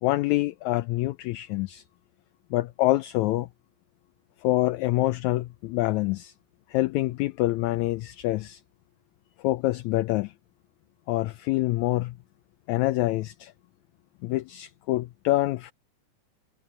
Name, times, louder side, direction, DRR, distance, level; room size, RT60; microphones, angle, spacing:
voice 1, 0.0-1.8 2.5-3.5 4.4-6.3 6.7-8.6 9.4-10.3 11.1-12.2 12.7-13.5 14.2-15.7, left 17 dB, 80° left, 1.8 m, -26 dB
omnidirectional pair, 3.7 m